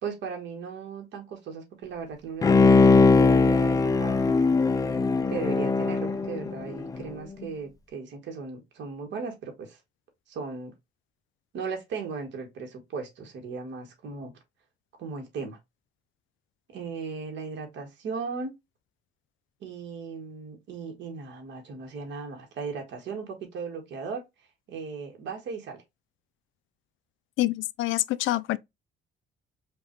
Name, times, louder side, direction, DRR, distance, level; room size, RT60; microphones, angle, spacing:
voice 1, 0.0-4.3 5.3-9.8 10.3-10.7 11.5-14.3 15.0-15.6 16.7-18.5 19.6-24.2 24.7-25.8, right 5 dB, 65° right, 1.5 m, -37 dB
Bowed string instrument, 2.4-7.0 7.4-7.5, left 4 dB, 20° left, 0.3 m, -20 dB
voice 2, 27.4-28.6, left 16 dB, 85° left, 0.4 m, -26 dB
5.1 x 2.4 x 3.0 m
cardioid pair, 175°, 19 cm